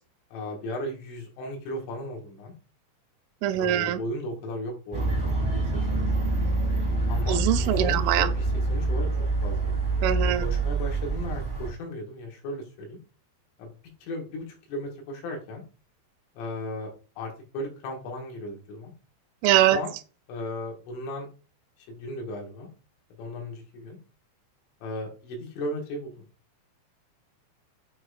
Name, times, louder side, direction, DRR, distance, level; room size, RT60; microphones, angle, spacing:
voice 1, 0.3-2.5 3.6-5.6 5.9-6.3 7.1-9.1 9.4-9.8 10.4-13.0 13.6-13.7 14.0-15.6 16.4-16.9 17.2-18.9 19.5-19.9 20.3-21.3 21.9-22.7 23.2-24.0 24.8-26.2, left 1 dB, 80° left, 4.0 m, -36 dB
voice 2, 3.4-4.0 7.3-8.3 10.0-10.4 19.4-19.8, right 12 dB, 85° right, 2.9 m, -22 dB
sound 1, 4.9-11.7, right 2 dB, 30° right, 0.5 m, -26 dB
8.5 x 4.8 x 2.4 m
omnidirectional pair, 5.6 m